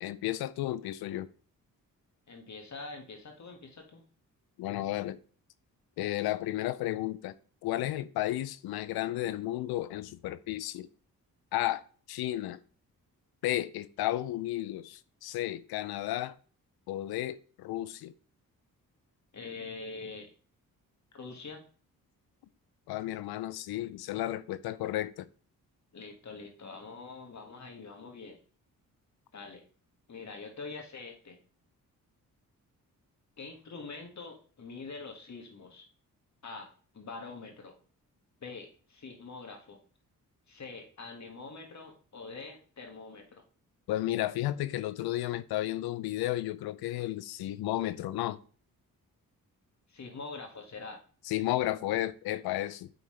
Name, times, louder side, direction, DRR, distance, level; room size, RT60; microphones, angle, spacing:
voice 1, 0.0-1.3 4.6-5.2 6.0-7.3 7.6-10.9 11.5-11.8 12.1-12.6 13.4-16.3 16.9-18.1 22.9-25.3 43.9-48.4 51.3-52.9, left 14 dB, 85° left, 0.5 m, -33 dB
voice 2, 2.3-4.0 19.3-20.3 21.1-21.6 25.9-28.4 29.3-29.6 30.1-31.4 33.4-35.9 36.4-36.7 36.9-37.7 38.4-39.8 40.5-43.4 49.9-51.0, left 4 dB, 50° left, 1.8 m, -44 dB
9.0 x 3.8 x 3.2 m
supercardioid pair, 55°, 37 cm